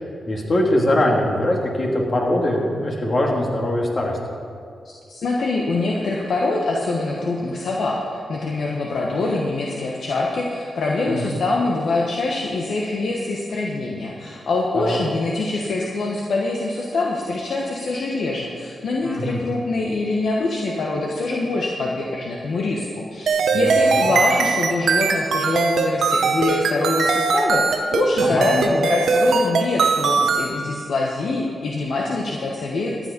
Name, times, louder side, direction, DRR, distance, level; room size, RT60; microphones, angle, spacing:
voice 1, 0.3-4.2 11.1-11.4 14.7-15.0 19.0-19.4 23.5-24.1 28.2-28.5, left 1 dB, 55° left, -1 dB, 2.7 m, -22 dB
voice 2, 4.8-33.1, left 2 dB, 75° left, -2 dB, 1.3 m, -24 dB
sound 1, 23.3-30.5, right 4 dB, 80° right, 0.9 m, -20 dB
14.0 x 9.3 x 5.3 m, 2.3 s
supercardioid pair, 45°, 0 cm